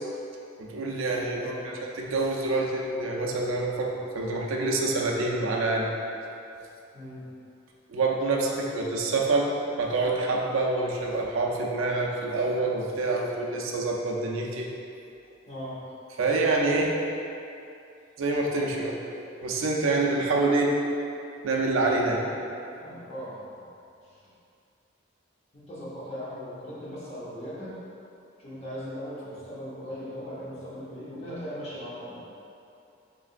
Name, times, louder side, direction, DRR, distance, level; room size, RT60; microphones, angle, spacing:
voice 1, 0.6-1.5 2.0-5.9 7.9-9.5 9.8-14.7 16.2-16.9 18.2-19.0 19.4-20.8 21.4-22.3, right 2 dB, 80° right, -1 dB, 0.4 m, -26 dB
voice 2, 1.3-1.7 6.9-7.3 15.5-15.8 22.0-23.6 24.0-24.2 25.5-27.8 28.4-32.2, equal, 30° left, -9 dB, 0.9 m, -39 dB
3.8 x 3.3 x 2.4 m, 2.7 s
head